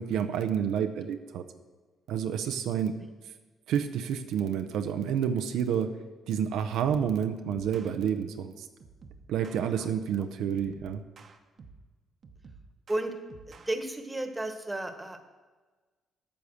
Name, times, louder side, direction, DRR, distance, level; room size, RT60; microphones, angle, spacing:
voice 1, 0.0-1.5 2.1-3.1 3.7-6.0 6.3-8.7 9.3-11.0, right 8 dB, 80° right, 7 dB, 0.6 m, -29 dB
sound 1, 7.5-8.0 8.8-9.7 10.5-11.9 12.2-13.7, right 4 dB, 50° right, 0.9 m, -51 dB
voice 2, 13.5-15.3, right 1 dB, 15° right, 7 dB, 1.3 m, -33 dB
8.7 x 6.9 x 6.4 m, 1.3 s
cardioid pair, 75°, 0 cm